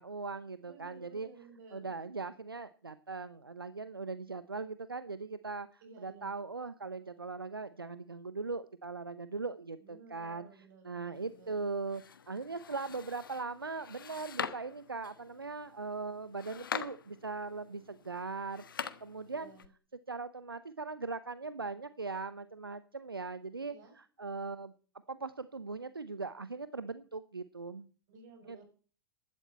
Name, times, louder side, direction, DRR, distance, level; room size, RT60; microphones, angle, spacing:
voice 1, 0.0-1.3 1.7-10.5 10.8-19.5 20.1-24.7 25.1-27.9 28.5-28.6, right 4 dB, 80° right, 14 dB, 0.8 m, -40 dB
voice 2, 0.6-2.0 5.8-6.3 9.8-11.7 19.3-19.7 23.7-23.9 28.1-28.6, right 3 dB, 55° right, 5 dB, 7.1 m, -56 dB
sound 1, 11.1-19.7, left 7 dB, 70° left, 1.3 m, -44 dB
16.0 x 12.0 x 4.3 m, 0.39 s
figure-of-eight pair, 90°, 12 cm